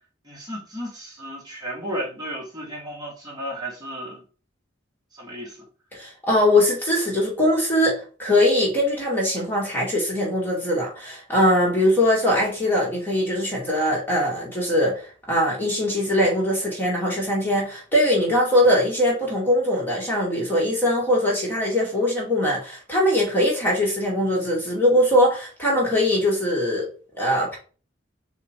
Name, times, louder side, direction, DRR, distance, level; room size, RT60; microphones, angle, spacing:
voice 1, 0.2-4.2 5.1-5.6, equal, 20° right, 1.9 m, -34 dB
voice 2, 5.9-15.0 15.3-26.9 27.2-27.6, left 1 dB, 10° left, 1.9 m, -21 dB
5.2 x 4.1 x 4.5 m
head